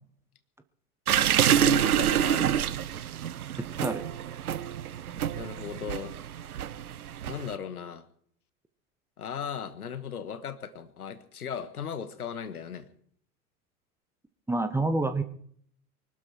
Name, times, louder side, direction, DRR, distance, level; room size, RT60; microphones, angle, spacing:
sound 1, 1.1-7.5, right 10 dB, 75° right, 0.8 m, -27 dB
voice 1, 1.4-2.6 5.3-6.1 7.3-8.0 9.2-12.9, left 8 dB, 75° left, 13 dB, 1.6 m, -37 dB
voice 2, 3.6-4.1 14.5-15.2, right 2 dB, 5° right, 9 dB, 1.1 m, -28 dB
24.0 x 12.0 x 4.6 m, 0.62 s
figure-of-eight pair, 85°, 45 cm